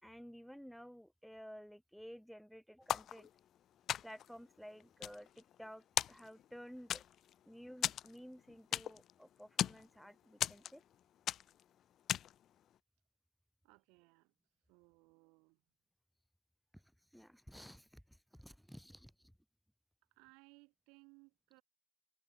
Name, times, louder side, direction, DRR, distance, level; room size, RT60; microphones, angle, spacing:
voice 1, 0.0-3.3 4.0-7.0 7.5-10.8 16.7-16.8 17.1-19.3, equal, ahead, 2.6 m, -54 dB
sound 1, 2.9-3.6 3.9-4.4 4.8-5.7 6.0-6.5 6.9-7.4 7.8-9.1 9.4-9.9 10.4-10.9 11.3-11.6 12.1-12.4, left 11 dB, 35° left, 0.4 m, -37 dB
voice 2, 13.6-14.3 14.7-15.6 20.1-21.6, right 28 dB, 50° right, 2.9 m, -64 dB
hypercardioid pair, 105°, 0 cm